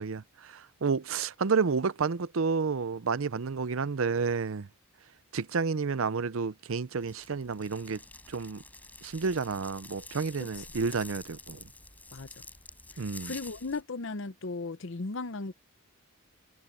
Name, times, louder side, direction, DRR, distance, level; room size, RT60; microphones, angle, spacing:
voice 1, 0.0-4.7 5.3-8.0 8.3-8.6 9.0-11.6 13.0-13.3, right 5 dB, 65° right, 0.6 m, -30 dB
sound 1, 7.0-13.8, left 2 dB, 5° left, 4.3 m, -48 dB
voice 2, 12.9-15.5, left 3 dB, 60° left, 0.7 m, -37 dB
head